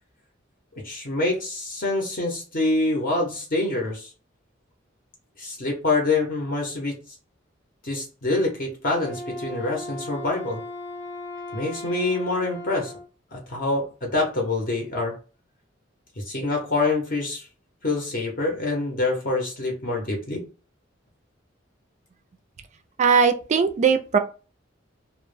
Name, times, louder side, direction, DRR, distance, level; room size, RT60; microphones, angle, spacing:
voice 1, 0.8-4.1 5.4-6.9 7.8-10.6 11.5-12.9 13.3-15.1 16.2-17.5 17.8-20.4, left 2 dB, 50° left, 0 dB, 0.7 m, -26 dB
Wind instrument woodwind instrument, 8.9-13.1, left 2 dB, 90° left, 0.8 m, -37 dB
voice 2, 23.0-24.2, right 6 dB, 40° right, 7 dB, 0.3 m, -19 dB
2.1 x 2.0 x 3.1 m, 0.35 s
head